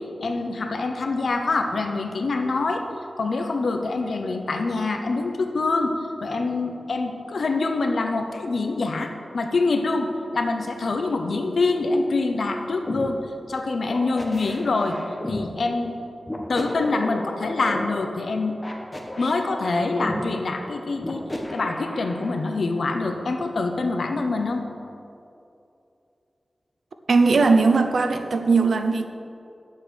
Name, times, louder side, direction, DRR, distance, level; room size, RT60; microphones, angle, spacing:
voice 1, 0.2-2.8 3.2-5.9 6.2-13.2 13.5-15.0 15.3-15.9 16.5-18.6 19.2-24.6, left 3 dB, 80° left, 4 dB, 1.0 m, -25 dB
sound 1, 12.9-13.0 13.9-15.4 16.3-17.8 18.6-20.2 21.0-22.3, left 1 dB, 20° left, 1.3 m, -33 dB
voice 2, 27.1-29.1, right 4 dB, 85° right, 7 dB, 0.7 m, -19 dB
9.3 x 7.5 x 6.4 m, 2.7 s
wide cardioid pair, 105°, 0 cm